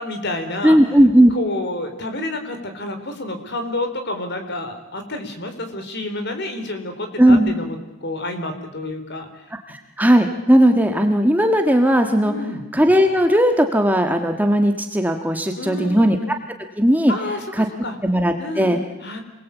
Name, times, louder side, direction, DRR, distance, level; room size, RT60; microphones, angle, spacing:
voice 1, 0.0-0.8 1.3-9.3 12.2-12.6 15.6-16.1 17.1-18.0 18.4-19.2, left 2 dB, 50° left, 6 dB, 4.1 m, -29 dB
voice 2, 0.6-1.3 7.2-7.6 9.7-12.3 12.7-16.2 16.8-17.1 17.6-17.7 18.0-18.8, equal, 10° right, 5 dB, 1.5 m, -16 dB
28.0 x 21.0 x 8.4 m, 1.0 s
head